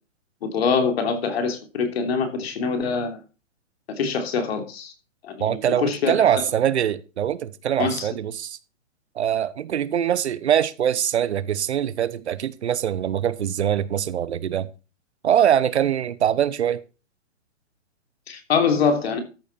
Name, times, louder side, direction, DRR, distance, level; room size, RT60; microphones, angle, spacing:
voice 1, 0.4-3.2 3.9-4.9 5.2-6.2 7.8-8.1 18.3-19.2, left 5 dB, 55° left, 3.3 m, -24 dB
voice 2, 5.4-8.6 9.1-14.7 15.2-16.8, right 10 dB, 60° right, 1.1 m, -23 dB
13.5 x 8.4 x 4.2 m
hypercardioid pair, 155°, 38 cm